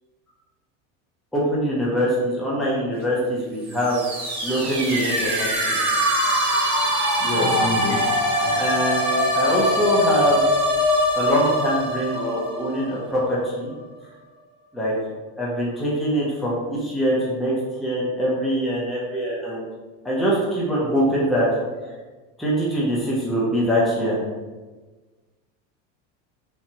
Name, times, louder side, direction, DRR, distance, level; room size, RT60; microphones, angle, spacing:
voice 1, 1.3-5.8 7.2-7.4 8.5-10.4 11.1-13.7 14.7-14.9 15.4-19.6 20.0-21.5 21.7-21.9 22.4-24.2, equal, ahead, -6 dB, 0.5 m, -23 dB
sound 1, 3.7-13.4, equal, 15° right, 1.1 m, -23 dB
voice 2, 7.2-8.6, left 2 dB, 50° left, 0 dB, 0.8 m, -29 dB
3.4 x 3.0 x 2.8 m, 1.3 s
supercardioid pair, 145°, 34 cm